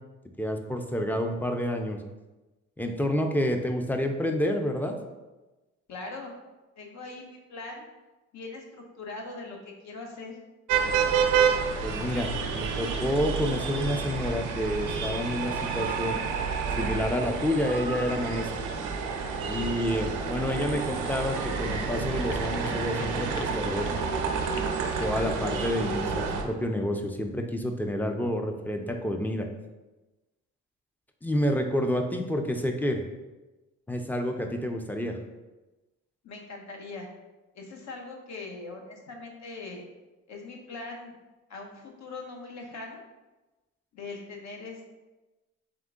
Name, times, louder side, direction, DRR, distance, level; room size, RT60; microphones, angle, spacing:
voice 1, 0.4-2.0 2.8-5.0 11.8-16.2 16.8-18.5 19.5-23.9 25.0-29.5 31.2-33.0 33.9-35.2, equal, 5° left, 4 dB, 0.5 m, -29 dB
voice 2, 5.9-6.3 6.8-7.8 8.3-10.4 36.2-37.1 37.5-39.8 40.3-41.1 41.5-43.0 43.9-44.9, left 3 dB, 65° left, 1 dB, 1.0 m, -41 dB
sound 1, 10.7-26.4, right 5 dB, 85° right, 0.7 m, -29 dB
sound 2, 19.9-25.2, left 6 dB, 85° left, 0.5 m, -45 dB
3.6 x 3.5 x 3.7 m, 1.1 s
cardioid pair, 90°, 30 cm